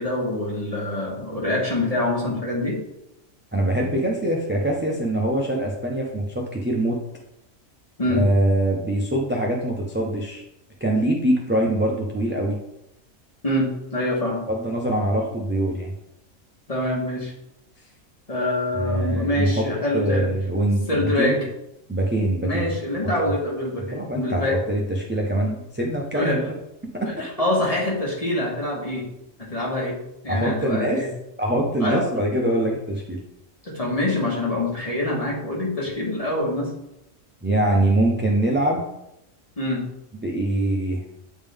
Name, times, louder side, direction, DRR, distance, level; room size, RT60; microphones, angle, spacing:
voice 1, 0.0-2.8 8.0-8.2 13.4-14.4 16.7-17.3 18.3-20.3 20.9-21.3 22.4-24.6 26.1-26.5 27.0-29.0 29.4-30.0 30.2-31.1 31.8-32.0 33.6-36.7 39.6-39.8, left 1 dB, 25° left, -4 dB, 1.6 m, -25 dB
voice 2, 3.5-7.0 8.1-10.4 10.8-12.6 14.5-15.9 18.7-19.7 19.9-21.5 21.9-22.7 23.2-23.3 23.9-24.4 24.7-26.5 26.9-27.3 30.3-31.0 31.4-33.2 37.4-38.9 40.2-41.0, right 1 dB, 15° right, -1 dB, 0.4 m, -23 dB
8.6 x 3.6 x 3.5 m, 0.85 s
omnidirectional pair, 1.4 m